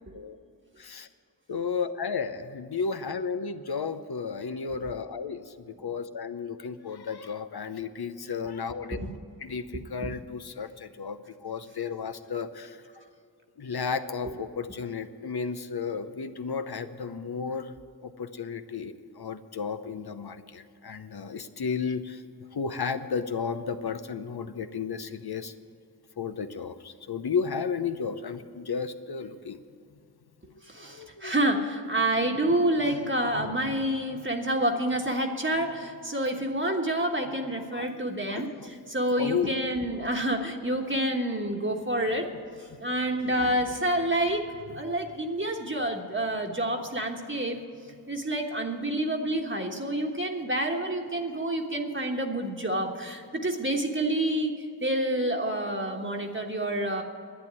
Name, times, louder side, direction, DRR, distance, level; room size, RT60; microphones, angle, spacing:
voice 1, 1.5-5.4 5.8-9.0 9.4-12.8 13.6-17.7 18.0-22.2 22.5-25.5 26.2-29.6 30.8-31.3 33.3-33.5 37.7-37.9 38.3-38.5 39.2-39.5 43.3-43.6, left 5 dB, 70° left, 10 dB, 0.8 m, -33 dB
voice 2, 9.7-10.1 14.2-14.3 30.7-42.3 42.8-47.6 48.1-57.0, right 1 dB, 30° right, 1 dB, 1.3 m, -28 dB
11.5 x 8.9 x 9.6 m, 2.4 s
wide cardioid pair, 45°, 39 cm